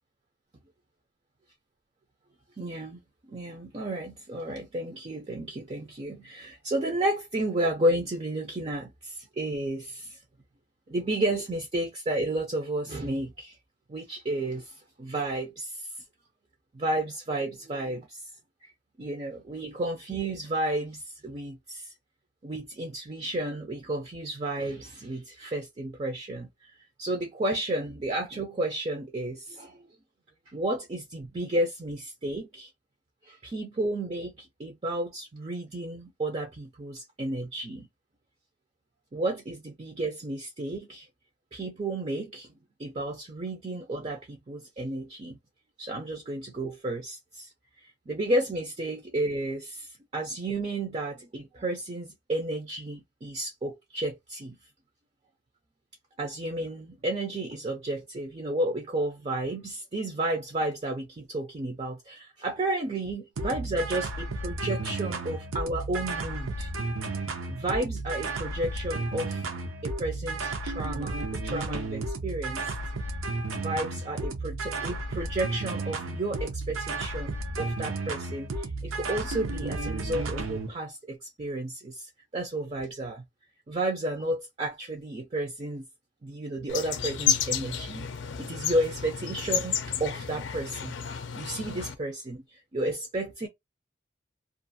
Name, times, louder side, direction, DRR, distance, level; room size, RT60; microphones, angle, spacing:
voice 1, 2.6-3.0 3.3-10.2 10.9-13.6 13.9-15.9 16.7-18.2 18.6-18.7 19.0-21.9 22.4-26.5 27.0-29.8 30.5-32.7 33.2-37.9 39.1-41.1 41.5-42.5 42.8-45.4 45.8-47.5 48.1-54.6 56.2-66.7 67.5-69.4 69.8-72.7 73.6-83.2 83.7-85.8 86.2-88.1 88.4-90.9 91.4-93.5, right 1 dB, 30° right, 0.4 m, -32 dB
sound 1, 63.4-80.7, right 2 dB, 90° right, 0.6 m, -33 dB
sound 2, 86.7-91.9, left 7 dB, 65° left, 0.5 m, -31 dB
2.5 x 2.4 x 2.6 m
head